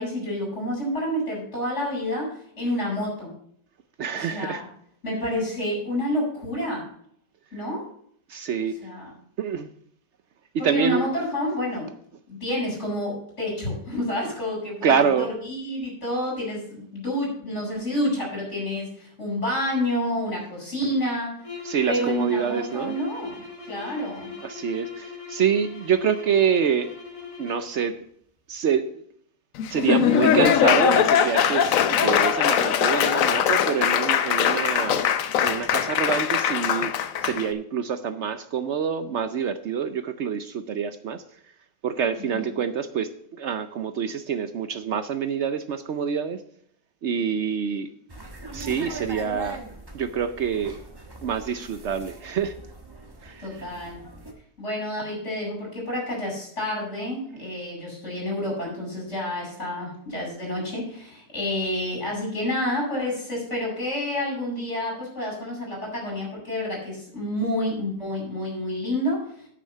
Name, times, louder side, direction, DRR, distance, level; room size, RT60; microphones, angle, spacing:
voice 1, 0.0-3.3 4.1-4.7 5.0-6.9 7.5-7.8 8.8-9.1 10.6-11.9 12.3-21.3 21.9-23.4 23.6-24.3 42.2-42.5 53.4-54.0 54.6-69.2, left 1 dB, 40° left, -2 dB, 5.7 m, -29 dB
voice 2, 4.0-4.6 8.3-8.8 9.4-9.7 10.5-11.1 14.8-15.3 21.6-23.0 24.4-26.9 27.4-28.0 28.5-28.9 29.7-35.0 35.4-36.9 37.2-41.2 41.8-43.1 43.4-46.4 47.0-47.9 48.5-49.6 49.9-50.8 51.2-52.5 53.2-53.7, right 7 dB, 65° right, 10 dB, 0.7 m, -26 dB
sound 1, 21.4-27.8, left 5 dB, 20° left, 2.3 m, -39 dB
Laughter / Applause, 29.6-37.5, left 8 dB, 60° left, 1.0 m, -21 dB
sound 2, 48.1-54.3, right 2 dB, 15° right, 1.1 m, -40 dB
9.0 x 6.4 x 6.6 m, 0.65 s
omnidirectional pair, 1.8 m